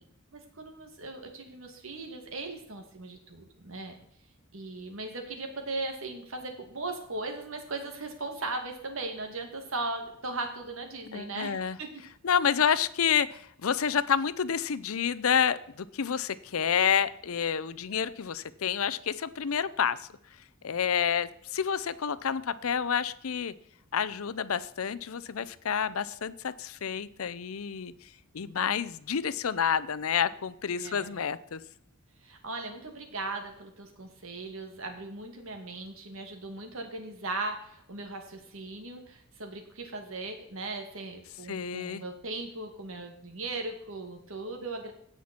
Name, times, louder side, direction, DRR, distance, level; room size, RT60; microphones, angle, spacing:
voice 1, 0.3-4.0 4.5-11.9 30.8-31.1 32.2-44.9, right 2 dB, 70° right, 4 dB, 2.4 m, -38 dB
voice 2, 11.1-11.8 12.2-20.1 20.6-23.5 23.9-27.9 28.3-31.6 41.5-42.0, left 7 dB, 80° left, 16 dB, 0.6 m, -29 dB
17.0 x 5.9 x 4.4 m, 0.70 s
head